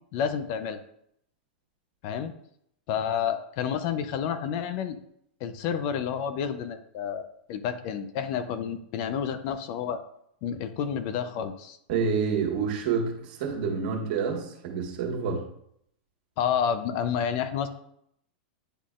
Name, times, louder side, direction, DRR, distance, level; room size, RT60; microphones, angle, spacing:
voice 1, 0.1-0.8 2.0-2.3 2.9-5.0 5.4-10.0 10.4-11.8 16.4-17.7, left 8 dB, 45° left, 10 dB, 0.6 m, -30 dB
voice 2, 11.9-15.4, right 5 dB, 55° right, 1 dB, 1.7 m, -28 dB
10.0 x 4.0 x 2.5 m, 0.70 s
supercardioid pair, 145°, 6 cm